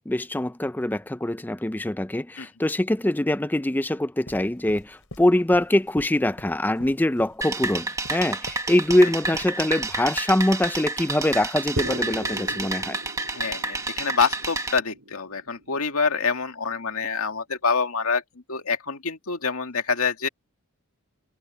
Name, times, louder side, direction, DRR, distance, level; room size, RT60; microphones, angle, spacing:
voice 1, 0.1-13.0, left 1 dB, 10° left, 0.4 m, -23 dB
sound 1, 4.3-9.5 9.8-9.9, left 1 dB, 65° left, 5.0 m, -43 dB
sound 2, 7.4-14.8, right 3 dB, 15° right, 1.6 m, -30 dB
sound 3, 11.8-16.1, right 1 dB, 70° right, 6.0 m, -38 dB
voice 2, 13.3-18.2 18.5-20.3, left 5 dB, 80° left, 2.1 m, -26 dB
head